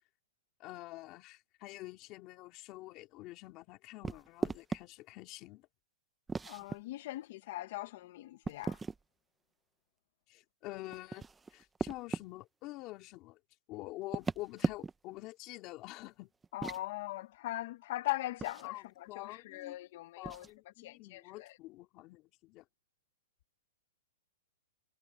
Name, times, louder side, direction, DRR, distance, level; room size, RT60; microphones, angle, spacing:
voice 1, 0.6-5.7 10.3-13.4 13.7-16.3 18.6-19.8 20.2-22.6, left 19 dB, 30° left, 2.6 m, -47 dB
sound 1, 4.0-4.8 6.3-6.8 8.4-9.0 10.9-12.3 14.0-15.1 16.4-16.8 18.4-18.7 20.2-20.5, right 4 dB, 10° right, 0.7 m, -37 dB
voice 2, 6.5-8.8 16.5-21.6, left 16 dB, 50° left, 0.9 m, -40 dB
hypercardioid pair, 160°, 0 cm